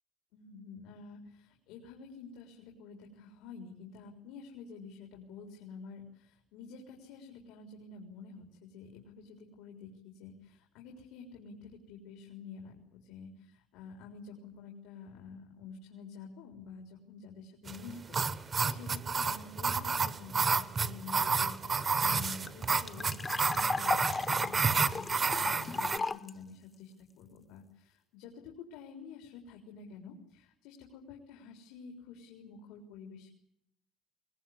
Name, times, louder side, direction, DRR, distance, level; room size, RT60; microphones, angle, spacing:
voice 1, 0.3-33.3, left 5 dB, 85° left, 1 dB, 4.0 m, -49 dB
sound 1, 17.7-26.0, right 5 dB, 20° right, 0.9 m, -30 dB
sound 2, 21.5-21.6 21.8-21.9 22.2-26.3, left 4 dB, 15° left, 0.9 m, -36 dB
21.5 x 20.5 x 9.5 m, 0.75 s
cardioid pair, 175°, 0 cm